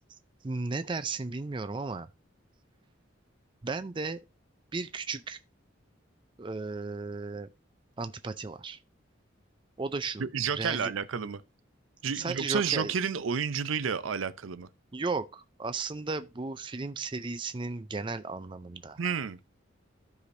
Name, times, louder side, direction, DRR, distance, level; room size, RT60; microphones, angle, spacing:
voice 1, 0.4-2.1 3.6-4.2 4.7-5.4 6.4-7.5 8.0-8.8 9.8-10.3 10.5-10.9 12.1-12.9 14.9-19.0, right 3 dB, 25° right, 0.4 m, -35 dB
voice 2, 10.2-11.4 12.0-14.7 19.0-19.4, right 6 dB, 85° right, 0.5 m, -30 dB
14.0 x 5.0 x 2.6 m
head